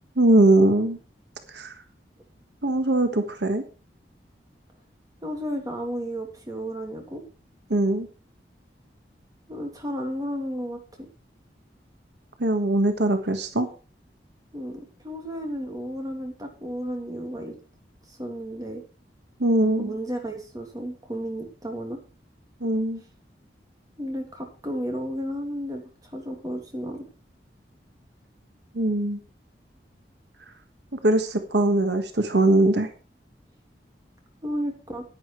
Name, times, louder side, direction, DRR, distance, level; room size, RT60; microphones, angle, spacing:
voice 1, 0.2-1.0 1.5-1.7 2.6-3.6 7.7-8.1 12.4-13.7 19.4-19.9 22.6-23.0 28.7-29.2 31.0-32.9, right 1 dB, 80° right, 7 dB, 1.6 m, -21 dB
voice 2, 5.2-7.2 9.5-11.1 14.5-17.6 18.1-18.8 19.8-22.0 24.0-27.1 34.4-35.0, equal, 20° right, 2 dB, 2.9 m, -33 dB
10.5 x 10.5 x 4.7 m, 0.35 s
head